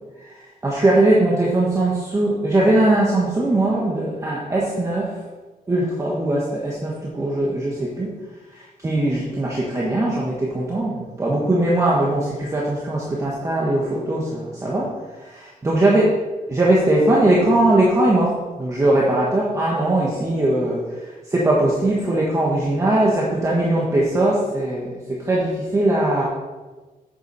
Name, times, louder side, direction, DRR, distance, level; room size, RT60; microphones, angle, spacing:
voice 1, 0.2-5.2 5.7-8.1 8.5-16.1 16.5-26.2, right 1 dB, 20° right, -4 dB, 1.4 m, -20 dB
8.7 x 7.3 x 5.4 m, 1.3 s
wide cardioid pair, 180°, 15 cm